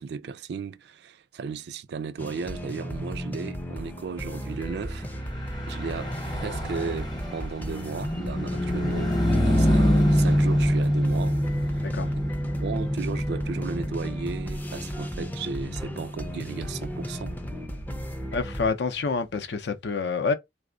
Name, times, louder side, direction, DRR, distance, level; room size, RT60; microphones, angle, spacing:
voice 1, 0.0-5.1 5.7-6.1 6.4-9.2 9.4-11.9 12.6-17.4, right 5 dB, 65° right, 0.3 m, -35 dB
sound 1, 2.2-18.7, equal, 10° left, 0.4 m, -35 dB
Car passing by / Truck, 5.2-18.9, equal, 25° left, 0.8 m, -27 dB
voice 2, 18.3-20.3, left 4 dB, 65° left, 0.5 m, -27 dB
3.3 x 2.0 x 3.7 m
head